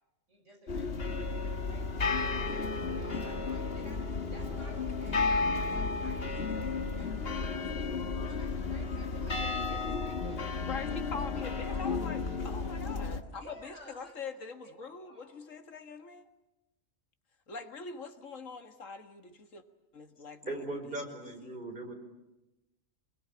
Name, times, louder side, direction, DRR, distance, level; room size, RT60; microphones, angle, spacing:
voice 1, 0.3-8.0 8.2-11.0 11.3-12.3 13.4-15.3, right 1 dB, 65° right, 2 dB, 5.9 m, -54 dB
sound 1, 0.7-13.2, left 4 dB, 50° left, 1.9 m, -33 dB
voice 2, 10.7-16.3 17.5-19.6 19.9-21.2 21.4-21.6, left 4 dB, 80° left, 6 dB, 2.0 m, -43 dB
voice 3, 20.5-21.9, right 1 dB, 40° right, 4 dB, 4.7 m, -38 dB
25.5 x 21.5 x 9.7 m, 0.99 s
omnidirectional pair, 1.3 m